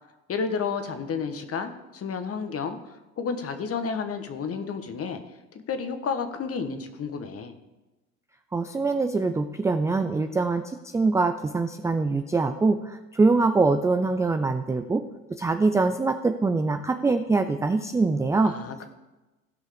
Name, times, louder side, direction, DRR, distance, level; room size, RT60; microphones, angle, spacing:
voice 1, 0.3-2.8 3.2-5.2 5.5-7.5 18.4-18.9, left 5 dB, 35° left, 9 dB, 1.3 m, -31 dB
voice 2, 8.5-10.6 10.9-15.0 15.4-18.5, right 3 dB, 10° right, 8 dB, 0.3 m, -23 dB
16.0 x 5.5 x 5.1 m, 1.1 s
hypercardioid pair, 80°, 43 cm